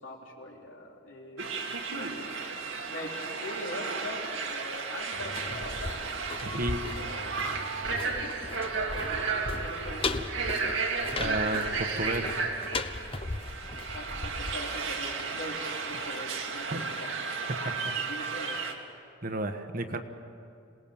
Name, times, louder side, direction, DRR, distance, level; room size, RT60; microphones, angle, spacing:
voice 1, 0.0-1.6 1.9-2.3 2.9-5.9 8.0-8.3 8.5-10.2 11.2-11.4 13.9-17.2 18.0-18.6, left 1 dB, 75° left, -1 dB, 3.7 m, -42 dB
sound 1, 1.4-18.7, right 4 dB, 85° right, 2.2 m, -33 dB
sound 2, 5.1-15.9 16.2-16.3, left 3 dB, 30° left, 0.8 m, -38 dB
voice 2, 6.4-6.8 11.2-12.5 16.7-16.9 17.5-17.7 19.2-20.0, right 1 dB, 45° right, 7 dB, 1.3 m, -32 dB
26.5 x 19.0 x 7.1 m, 2.6 s
head